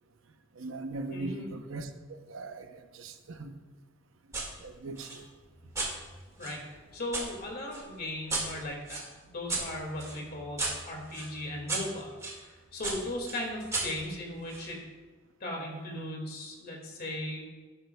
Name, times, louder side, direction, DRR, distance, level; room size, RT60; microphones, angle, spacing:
voice 1, 0.6-3.6 4.6-5.3, right 2 dB, 80° right, 7 dB, 0.8 m, -40 dB
voice 2, 1.1-1.5 6.4-14.8 15.4-17.5, left 1 dB, 50° left, 0 dB, 2.1 m, -38 dB
sound 1, 4.3-4.5 5.0-7.3 7.7-12.4 12.8-14.7, right 3 dB, 15° right, 1.9 m, -36 dB
12.0 x 10.0 x 2.3 m, 1.3 s
head